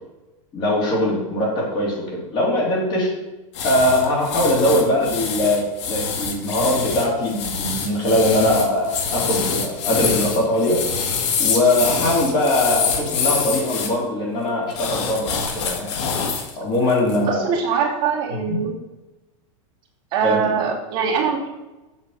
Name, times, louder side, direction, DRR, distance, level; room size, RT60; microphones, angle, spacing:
voice 1, 0.5-3.1 3.6-10.8 11.4-15.9 16.6-17.5 18.3-18.6 20.2-20.5, left 1 dB, 25° left, -2 dB, 3.2 m, -21 dB
sound 1, 3.5-13.9 14.7-16.5 16.9-17.2, left 5 dB, 55° left, 1.9 m, -25 dB
voice 2, 17.1-18.8 20.1-21.5, right 6 dB, 30° right, -4 dB, 2.7 m, -23 dB
8.2 x 6.7 x 6.7 m, 1.1 s
supercardioid pair, 170°, 18 cm